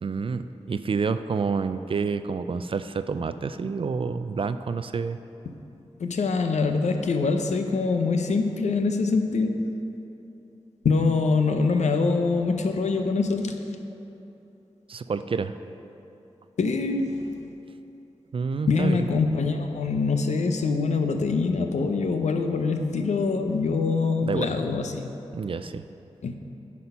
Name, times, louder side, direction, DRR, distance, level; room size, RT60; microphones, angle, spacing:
voice 1, 0.0-5.2 14.9-15.5 18.3-19.2 24.2-24.5 25.3-25.8, right 5 dB, 50° right, 11 dB, 0.3 m, -28 dB
voice 2, 6.0-9.7 10.8-13.6 16.6-17.3 18.7-25.1 26.2-26.3, left 4 dB, 75° left, 6 dB, 0.6 m, -24 dB
9.4 x 4.3 x 5.5 m, 2.9 s
cardioid pair, 45°, 12 cm